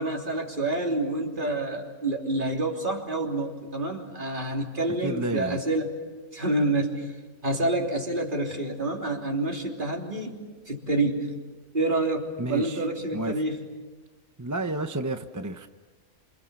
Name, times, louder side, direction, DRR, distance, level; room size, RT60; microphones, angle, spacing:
voice 1, 0.0-6.0 6.3-7.1 7.4-10.4 10.7-11.3 11.7-13.7, right 2 dB, 35° right, 0 dB, 3.6 m, -28 dB
voice 2, 5.0-5.6 12.4-12.9 13.1-13.3 14.4-15.7, right 2 dB, 15° right, 7 dB, 0.6 m, -30 dB
28.5 x 27.5 x 7.1 m, 1.3 s
omnidirectional pair, 1.5 m